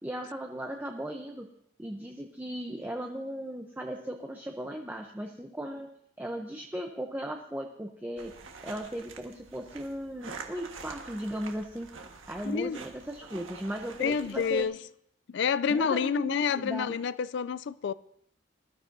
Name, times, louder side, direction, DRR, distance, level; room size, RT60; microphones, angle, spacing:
voice 1, 0.0-1.5 1.8-5.9 6.2-8.3 8.6-11.9 12.3-14.7 15.7-17.0, right 1 dB, 10° right, 0.7 m, -37 dB
sound 1, 8.2-14.6, right 4 dB, 85° right, 1.5 m, -46 dB
voice 2, 12.4-12.8 14.0-14.8 15.3-17.9, left 6 dB, 60° left, 0.4 m, -28 dB
20.5 x 12.5 x 2.7 m
head